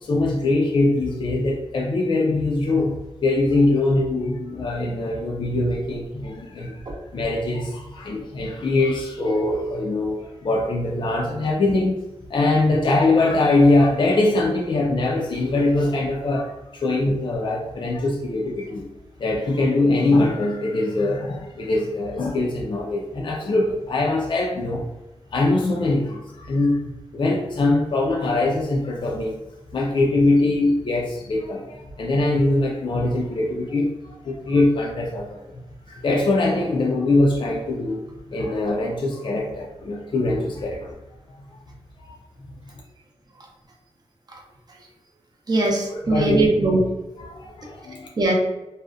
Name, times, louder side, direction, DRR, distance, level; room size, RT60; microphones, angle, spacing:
voice 1, 0.0-3.0 3.2-18.9 19.2-24.8 25.3-29.4 29.7-35.4 35.9-38.0 38.3-41.0 41.3-41.4 42.0-42.2 45.9-46.4 47.2-48.1, left 2 dB, 45° left, -1 dB, 0.3 m, -22 dB
voice 2, 45.5-46.8 48.2-48.3, right 2 dB, 35° right, -1 dB, 0.5 m, -20 dB
2.5 x 2.1 x 2.3 m, 1.0 s
wide cardioid pair, 90°, 11 cm